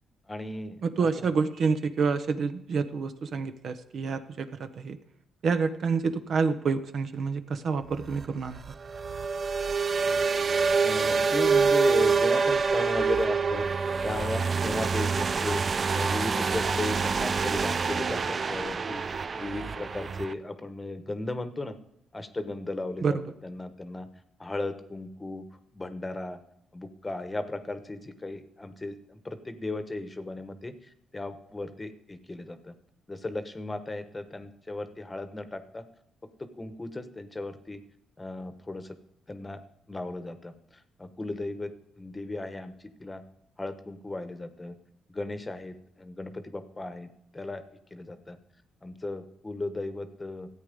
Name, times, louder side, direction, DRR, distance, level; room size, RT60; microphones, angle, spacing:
voice 1, 0.3-0.8 10.8-13.7 14.0-15.6 15.9-19.0 19.4-21.8 22.1-23.2 23.4-24.1 24.4-25.4 25.7-26.4 26.7-30.7 31.1-32.7 33.1-35.8 36.4-37.8 38.2-39.0 39.3-39.6 39.9-40.5 41.0-42.7 43.0-43.2 43.6-44.7 45.1-47.1 47.3-47.6 47.9-48.4 48.8-50.5, left 2 dB, 20° left, 10 dB, 1.1 m, -35 dB
voice 2, 0.8-5.0 5.4-8.6 23.0-23.2, right 5 dB, 55° right, 10 dB, 0.8 m, -28 dB
sound 1, 7.9-20.3, right 5 dB, 40° right, 0.4 m, -26 dB
13.5 x 8.4 x 5.2 m, 0.80 s
cardioid pair, 90°, 0 cm